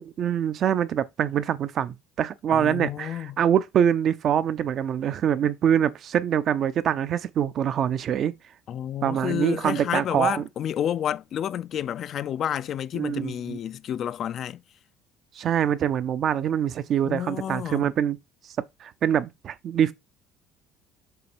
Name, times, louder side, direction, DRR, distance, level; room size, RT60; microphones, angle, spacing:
voice 1, 0.0-8.3 9.0-10.4 12.9-13.6 15.4-18.2 18.8-19.9, right 9 dB, 50° right, 0.6 m, -24 dB
voice 2, 2.5-3.4 8.7-14.6 17.1-17.9, left 10 dB, 45° left, 0.3 m, -30 dB
6.8 x 3.2 x 6.1 m
cardioid pair, 130°, 0 cm